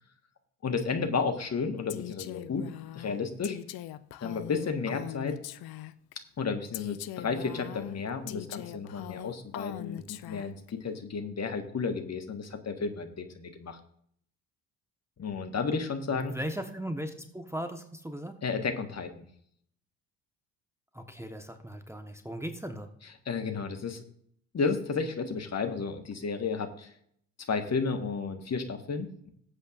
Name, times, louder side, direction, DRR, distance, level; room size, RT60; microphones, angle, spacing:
voice 1, 0.6-2.6 2.9-3.6 4.2-5.4 6.4-13.8 15.2-16.4 18.4-19.2 23.2-24.0 24.5-26.9 27.5-29.3, left 5 dB, 30° left, 6 dB, 1.6 m, -32 dB
Female speech woman speaking, 1.9-6.1 6.7-10.7, left 14 dB, 50° left, 0.7 m, -41 dB
voice 2, 16.1-18.4 20.9-22.9, equal, 5° right, 5 dB, 1.3 m, -38 dB
18.5 x 8.3 x 2.6 m, 0.66 s
figure-of-eight pair, 55°, 48 cm